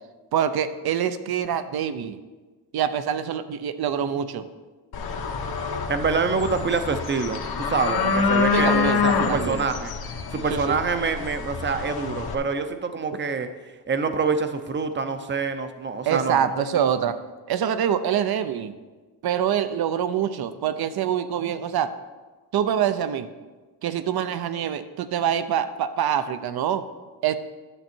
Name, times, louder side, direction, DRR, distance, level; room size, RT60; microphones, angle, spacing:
voice 1, 0.3-2.2 2.7-4.4 8.5-9.6 10.5-10.8 16.1-17.2 17.5-18.7 19.2-21.9 22.5-23.3 23.8-26.8 27.2-27.3, right 9 dB, 65° right, 12 dB, 0.7 m, -25 dB
sound 1, 4.9-12.3, left 5 dB, 65° left, 1.2 m, -26 dB
voice 2, 5.9-9.9 10.3-13.5 13.9-16.5, right 4 dB, 30° right, 9 dB, 0.7 m, -26 dB
11.0 x 7.4 x 4.4 m, 1.3 s
wide cardioid pair, 145°, 41 cm